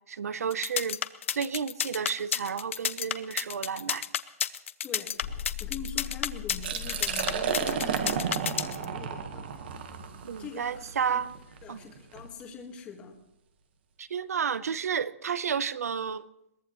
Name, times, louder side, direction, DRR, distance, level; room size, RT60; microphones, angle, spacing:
voice 1, 0.1-1.0 1.3-4.1 10.2-11.3 11.7-11.8 14.0-16.3, right 7 dB, 80° right, 16 dB, 0.9 m, -31 dB
sound 1, 0.5-8.8, left 9 dB, 55° left, 0.8 m, -30 dB
voice 2, 4.8-9.5 10.4-11.2 11.6-13.2, left 5 dB, 15° left, 2 dB, 1.6 m, -44 dB
sound 2, 5.2-8.3, left 12 dB, 35° left, 1.9 m, -40 dB
Liquid, 6.5-12.3, right 7 dB, 40° right, 1.5 m, -33 dB
22.0 x 19.5 x 3.1 m, 0.84 s
hypercardioid pair, 170°, 8 cm